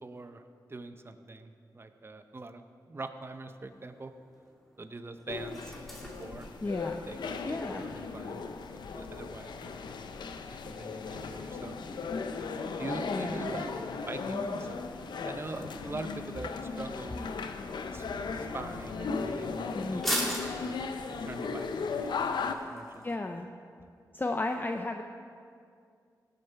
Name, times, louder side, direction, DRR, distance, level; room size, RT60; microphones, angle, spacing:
voice 1, 0.0-2.6 2.9-4.1 4.8-5.7 6.0-6.5 7.1-7.2 7.5-8.4 8.7-9.8 10.6-11.8 12.8-14.8 15.2-16.5 16.8-17.3 17.9-20.8 21.2-21.7 22.0-23.0, right 3 dB, 35° right, 8 dB, 0.7 m, -43 dB
sound 1, 3.6-23.1, equal, 5° left, 2.5 m, -44 dB
sound 2, 5.3-22.5, left 4 dB, 90° left, 0.6 m, -37 dB
voice 2, 6.6-7.0 7.5-7.8 13.1-13.4 19.7-20.0 23.0-23.5 24.1-25.0, left 2 dB, 25° left, 5 dB, 0.5 m, -33 dB
17.0 x 6.7 x 4.5 m, 2.3 s
cardioid pair, 60°, 7 cm